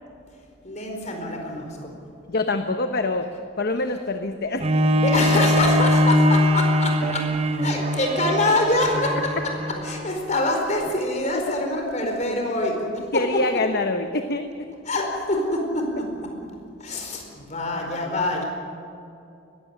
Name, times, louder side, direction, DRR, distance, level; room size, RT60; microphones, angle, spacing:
voice 1, 0.6-1.9 4.9-7.2 7.6-9.3 9.8-12.9 13.1-13.2 14.8-16.1 16.8-18.4, left 2 dB, 35° left, 2 dB, 4.5 m, -25 dB
voice 2, 2.3-3.3 3.6-4.6 13.1-14.5 17.7-18.4, left 2 dB, 50° left, 7 dB, 1.0 m, -26 dB
Bowed string instrument, 4.6-10.2 10.9-11.0, equal, 30° right, 1.0 m, -21 dB
20.5 x 16.0 x 9.9 m, 2.6 s
head